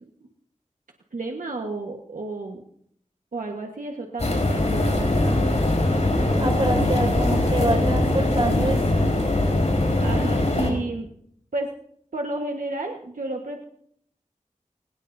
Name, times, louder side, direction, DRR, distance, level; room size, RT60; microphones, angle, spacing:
voice 1, 1.1-2.6 3.3-5.6 9.7-11.1 11.5-11.7 12.1-13.7, right 2 dB, 85° right, 1 dB, 1.5 m, -32 dB
sound 1, 4.2-10.7, left 1 dB, 60° left, 4.4 m, -21 dB
voice 2, 6.4-8.8, right 1 dB, 40° right, 3 dB, 5.4 m, -25 dB
24.5 x 17.5 x 2.7 m, 0.68 s
wide cardioid pair, 70°, 13 cm